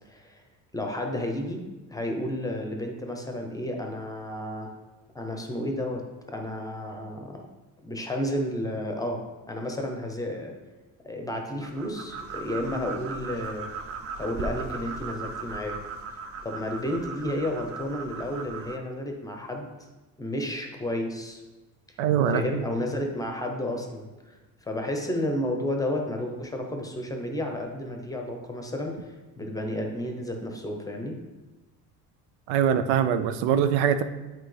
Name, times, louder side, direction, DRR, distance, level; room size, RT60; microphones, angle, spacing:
voice 1, 0.1-0.4 0.7-4.7 5.1-7.5 7.8-9.2 9.5-10.5 11.0-13.7 14.2-15.8 16.4-19.9 20.2-21.4 22.3-24.3 24.6-29.0 29.4-31.1, left 1 dB, 10° left, 3 dB, 0.7 m, -32 dB
sound 1, 11.6-18.8, right 4 dB, 35° right, 0.5 m, -37 dB
voice 2, 22.0-22.6 32.5-34.0, right 8 dB, 90° right, 9 dB, 0.6 m, -23 dB
8.2 x 4.3 x 3.3 m, 1.2 s
cardioid pair, 130°, 40 cm